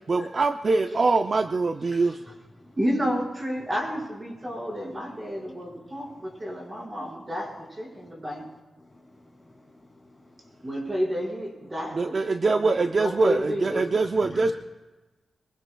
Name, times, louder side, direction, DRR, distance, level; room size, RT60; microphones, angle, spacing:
voice 1, 0.1-2.2 12.0-14.5, right 3 dB, 45° right, 7 dB, 0.5 m, -23 dB
voice 2, 2.8-8.4 10.6-12.1 12.4-13.8, equal, 25° right, -3 dB, 4.9 m, -31 dB
voice 3, 5.4-6.0 6.5-6.7 8.0-8.1 8.8-9.9 10.6-10.7 13.7-13.8 14.3-14.5, left 2 dB, 15° left, 1 dB, 2.6 m, -47 dB
22.5 x 22.0 x 2.3 m, 1.2 s
wide cardioid pair, 110°, 0 cm